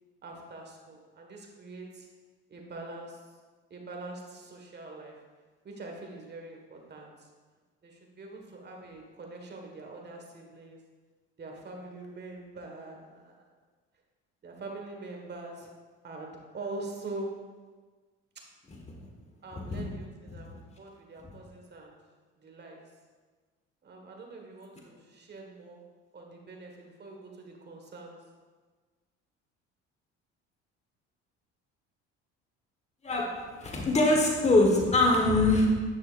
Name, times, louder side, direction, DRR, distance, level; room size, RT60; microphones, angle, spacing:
voice 1, 0.2-2.1 2.5-3.2 3.7-5.2 5.6-7.3 7.8-10.8 11.4-13.5 14.4-15.7 16.0-17.3 19.4-21.9 22.4-22.8 23.8-25.8 26.1-28.2, right 2 dB, 35° right, 1 dB, 1.7 m, -43 dB
voice 2, 33.6-35.7, left 2 dB, 20° left, 0 dB, 1.4 m, -23 dB
9.8 x 6.1 x 2.6 m, 1.4 s
supercardioid pair, 85°, 30 cm